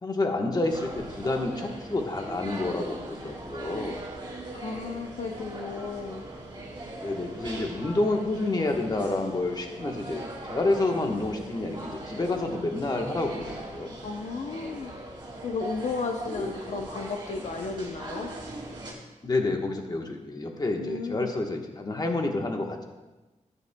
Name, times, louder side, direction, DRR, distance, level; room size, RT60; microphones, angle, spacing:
voice 1, 0.0-4.0 7.0-13.9 16.4-16.5 19.2-22.8, left 2 dB, 30° left, 2 dB, 1.2 m, -29 dB
sound 1, 0.7-18.9, right 1 dB, 35° right, 2.9 m, -40 dB
voice 2, 4.5-6.2 14.0-14.9 15.4-18.3 20.8-21.3, left 4 dB, 70° left, 4 dB, 0.6 m, -34 dB
14.5 x 10.0 x 2.2 m, 1.1 s
wide cardioid pair, 120°, 13 cm